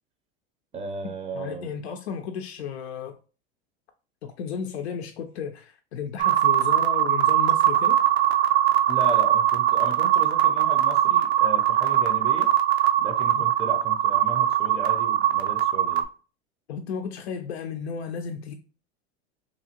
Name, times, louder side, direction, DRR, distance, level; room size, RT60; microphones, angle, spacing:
voice 1, 0.7-1.7 8.9-12.5 13.0-16.0, right 3 dB, 20° right, 0.5 m, -35 dB
voice 2, 1.3-3.2 4.2-8.0 13.3-13.4 16.7-18.5, left 7 dB, 85° left, 0.5 m, -34 dB
sound 1, 6.2-16.0, right 12 dB, 80° right, 0.5 m, -21 dB
2.9 x 2.5 x 2.8 m
hypercardioid pair, 95°, 31 cm